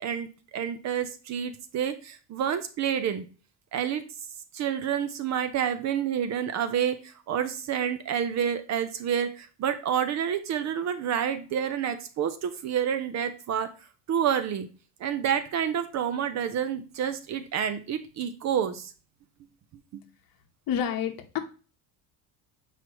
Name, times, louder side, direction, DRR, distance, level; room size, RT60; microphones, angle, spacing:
voice 1, 0.0-3.2 3.7-4.0 4.5-13.7 14.1-14.7 15.0-18.9 19.9-20.0, right 8 dB, 40° right, 11 dB, 0.5 m, -29 dB
voice 2, 20.7-21.4, left 9 dB, 55° left, 6 dB, 1.1 m, -28 dB
7.5 x 4.9 x 3.0 m, 0.36 s
cardioid pair, 165°, 42 cm